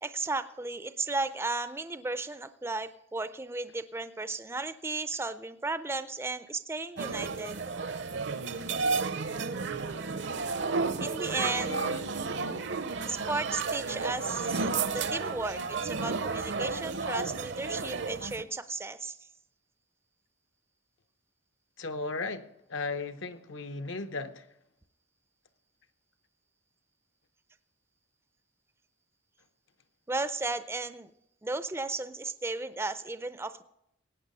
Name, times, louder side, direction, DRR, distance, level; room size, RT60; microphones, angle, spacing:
voice 1, 0.0-7.6 11.0-11.8 13.0-14.6 14.9-19.3 30.1-31.1 31.4-33.6, right 3 dB, 10° right, 0.4 m, -34 dB
sound 1, 7.0-18.4, right 4 dB, 60° right, 0.6 m, -32 dB
voice 2, 10.4-10.7 11.6-12.7 21.8-24.5, left 3 dB, 70° left, 0.8 m, -37 dB
17.0 x 9.0 x 5.4 m
head